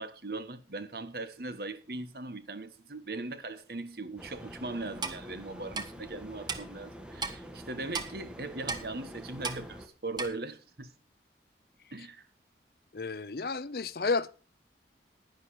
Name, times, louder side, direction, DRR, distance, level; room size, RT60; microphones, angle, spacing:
voice 1, 0.0-10.9 11.9-12.3, right 2 dB, 60° right, 1.4 m, -39 dB
sound 1, 4.2-9.9, equal, 5° right, 1.4 m, -47 dB
Clock, 5.0-5.2 5.7-5.9 6.5-6.6 7.2-7.3 7.9-8.1 8.7-8.8 9.4-9.6 10.2-10.3, right 4 dB, 25° right, 1.3 m, -34 dB
voice 2, 12.9-14.3, left 4 dB, 55° left, 0.6 m, -31 dB
11.0 x 11.0 x 4.9 m
head